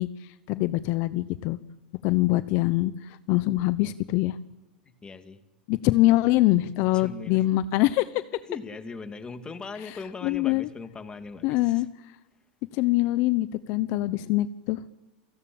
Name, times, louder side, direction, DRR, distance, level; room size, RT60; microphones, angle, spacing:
voice 1, 0.0-1.6 2.0-4.4 5.7-8.2 9.8-10.0 10.2-10.7 11.4-11.9 12.7-14.8, left 17 dB, 55° left, 15 dB, 1.0 m, -24 dB
voice 2, 4.9-5.4 6.9-7.5 8.5-11.8, left 4 dB, 20° left, 10 dB, 2.3 m, -40 dB
29.0 x 17.5 x 8.7 m, 1.1 s
hypercardioid pair, 115°, 5 cm